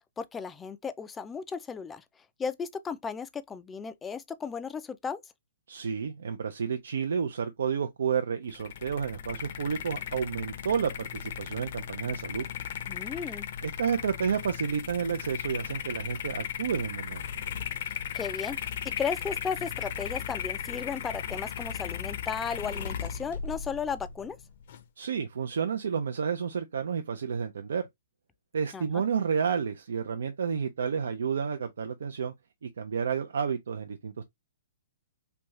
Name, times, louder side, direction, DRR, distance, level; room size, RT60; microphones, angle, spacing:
voice 1, 0.2-2.0 2.4-5.2 12.9-13.5 18.1-18.6 18.8-24.4 28.7-28.8, left 6 dB, 10° left, 0.3 m, -35 dB
voice 2, 5.7-12.4 13.6-17.2 25.0-27.8 28.5-32.3 32.6-34.3, right 6 dB, 75° right, 0.5 m, -30 dB
sound 1, 8.5-24.8, left 9 dB, 50° left, 0.6 m, -37 dB
3.4 x 2.7 x 3.0 m
hypercardioid pair, 150°, 0 cm